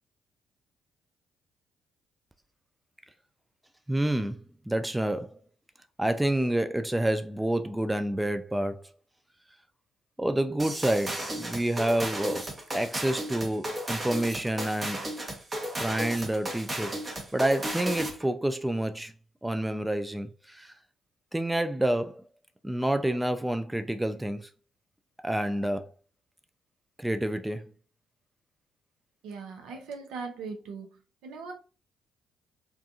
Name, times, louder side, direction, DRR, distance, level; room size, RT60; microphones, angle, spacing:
voice 1, 3.9-5.4 6.0-8.8 10.2-15.0 15.8-17.0 17.3-19.1 19.4-20.7 21.3-22.2 22.6-24.5 25.2-25.9 27.0-27.7 29.7-29.8, right 1 dB, 10° right, 0.3 m, -28 dB
sound 1, 10.6-18.3, right 1 dB, 30° right, 0.8 m, -34 dB
voice 2, 29.2-30.9 31.2-31.5, right 4 dB, 75° right, 0.6 m, -39 dB
2.4 x 2.3 x 2.7 m
hypercardioid pair, 45°, 0 cm